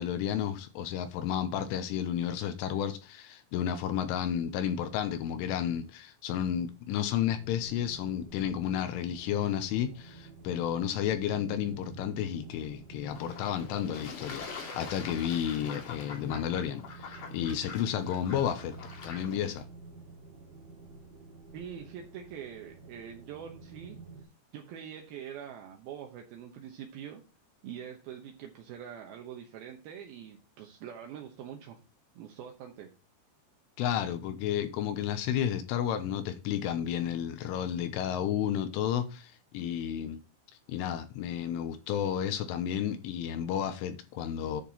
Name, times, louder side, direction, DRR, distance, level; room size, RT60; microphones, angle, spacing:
voice 1, 0.0-14.5 14.7-18.7 19.0-19.7 33.8-40.2 40.7-44.6, left 9 dB, 80° left, 3.4 m, -32 dB
sound 1, 7.2-24.2, right 3 dB, 45° right, 1.7 m, -50 dB
Fowl / Bird / Water, 13.1-19.6, left 5 dB, 45° left, 2.7 m, -45 dB
voice 2, 21.5-24.0 24.5-27.2 27.6-31.8 32.2-32.9, right 8 dB, 75° right, 2.3 m, -44 dB
10.5 x 6.6 x 4.2 m
omnidirectional pair, 5.8 m